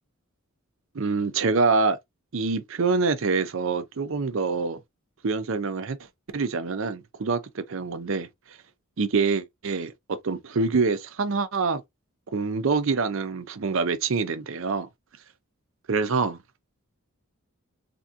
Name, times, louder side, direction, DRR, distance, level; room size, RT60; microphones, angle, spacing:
voice 1, 0.9-2.0 2.3-4.8 5.2-6.0 6.3-8.3 9.0-11.8 12.3-14.9 15.9-16.4, right 4 dB, 60° right, 0.5 m, -25 dB
3.4 x 2.8 x 2.5 m
head